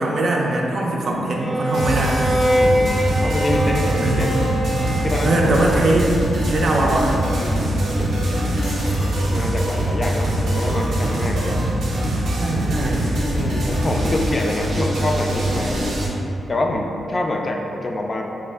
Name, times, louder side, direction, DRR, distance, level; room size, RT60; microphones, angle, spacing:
voice 1, 0.0-2.2 4.0-4.3 5.2-6.1 6.5-7.2 12.4-13.1, right 2 dB, 60° right, -1 dB, 0.5 m, -21 dB
Bowed string instrument, 1.4-5.8, equal, 15° right, 0.6 m, -23 dB
sound 1, 1.7-16.1, right 1 dB, 85° right, 0.8 m, -22 dB
voice 2, 2.5-4.4 5.0-5.6 7.3-8.4 8.8-11.6 13.3-15.8 16.5-18.2, left 2 dB, 35° left, 2 dB, 0.3 m, -26 dB
sound 2, 8.6-10.1, left 2 dB, 85° left, 0.6 m, -42 dB
4.3 x 2.0 x 3.3 m, 2.8 s
cardioid pair, 105°, 0 cm